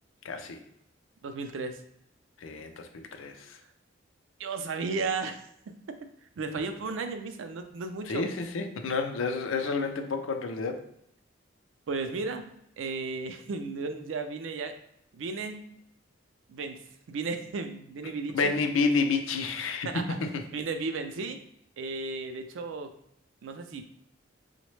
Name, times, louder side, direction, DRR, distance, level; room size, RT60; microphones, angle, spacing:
voice 1, 0.2-0.6 2.4-3.6 8.1-10.8 18.0-20.4, left 4 dB, 85° left, 6 dB, 0.4 m, -30 dB
voice 2, 1.2-1.8 4.4-5.4 5.7-6.0 6.4-8.2 11.9-12.5 12.8-14.8 15.1-15.7 16.5-16.8 17.1-18.5 19.8-20.0 20.5-21.4 21.8-22.9 23.4-23.9, right 4 dB, 75° right, 7 dB, 0.4 m, -34 dB
3.9 x 2.1 x 3.1 m, 0.75 s
head